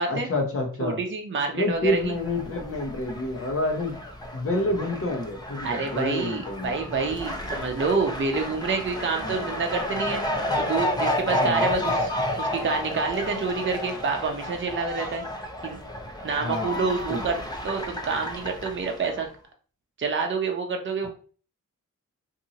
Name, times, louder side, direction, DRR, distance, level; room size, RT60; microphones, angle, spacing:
voice 1, 0.0-1.0 1.5-4.0 4.3-6.7 9.2-9.5 11.3-11.7 16.4-17.2, left 1 dB, 45° left, 1 dB, 1.0 m, -28 dB
voice 2, 0.8-2.0 5.6-10.2 10.6-12.1 12.4-15.2 15.6-15.8 16.2-19.3 20.0-21.1, right 4 dB, 35° right, 3 dB, 0.6 m, -28 dB
Fowl, 1.9-19.2, left 1 dB, 15° left, 0.7 m, -31 dB
2.7 x 2.7 x 2.7 m, 0.40 s
cardioid pair, 50°, 32 cm